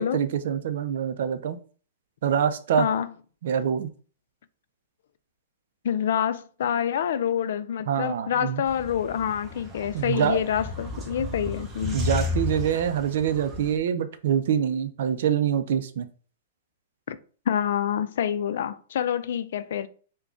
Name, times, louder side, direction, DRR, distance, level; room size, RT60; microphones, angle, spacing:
voice 1, 0.0-1.6 2.2-2.9 3.4-3.9 7.9-8.6 9.9-10.4 11.9-16.1, right 8 dB, 60° right, 0.4 m, -25 dB
voice 2, 5.8-12.0 17.1-17.2 17.5-19.9, left 9 dB, 65° left, 0.3 m, -27 dB
sound 1, 8.7-13.8, left 3 dB, 15° right, 0.6 m, -33 dB
3.7 x 2.2 x 3.5 m
hypercardioid pair, 160°, 0 cm